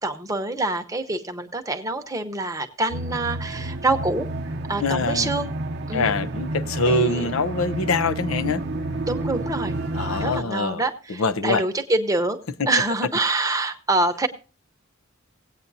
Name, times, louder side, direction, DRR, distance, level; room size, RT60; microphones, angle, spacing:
voice 1, 0.0-4.3 4.7-5.5 5.9-6.1 6.8-7.3 9.1-12.4 12.7-14.3, right 2 dB, 15° right, 0.8 m, -26 dB
sound 1, 2.9-10.4, right 1 dB, 50° right, 0.7 m, -30 dB
voice 2, 4.8-5.3 5.9-8.6 9.9-10.8 11.2-11.6, left 2 dB, 85° left, 0.6 m, -24 dB
18.0 x 8.8 x 2.7 m
head